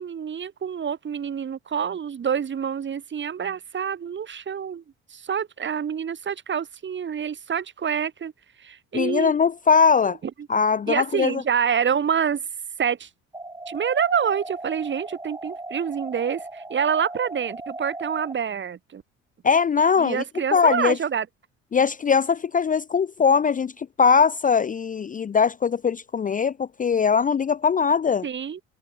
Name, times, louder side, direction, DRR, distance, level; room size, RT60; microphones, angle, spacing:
voice 1, 0.0-4.8 5.1-8.3 8.6-9.3 10.9-12.4 12.8-13.1 13.7-19.0 20.0-21.3 28.2-28.6, right 7 dB, 35° right, 2.0 m, -27 dB
voice 2, 8.9-10.2 10.5-11.4 19.4-20.2 20.5-21.0 21.7-28.3, left 6 dB, 25° left, 0.7 m, -21 dB
sound 1, 13.3-18.3, right 2 dB, 10° right, 5.1 m, -37 dB
figure-of-eight pair, 55°, 35 cm